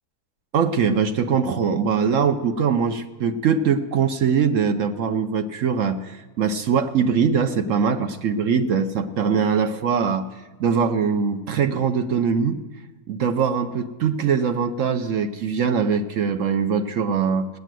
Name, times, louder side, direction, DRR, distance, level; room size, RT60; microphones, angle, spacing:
voice 1, 0.5-10.3 10.6-12.6 13.1-17.5, right 6 dB, 60° right, 8 dB, 1.0 m, -22 dB
17.5 x 9.2 x 7.6 m, 1.2 s
omnidirectional pair, 1.7 m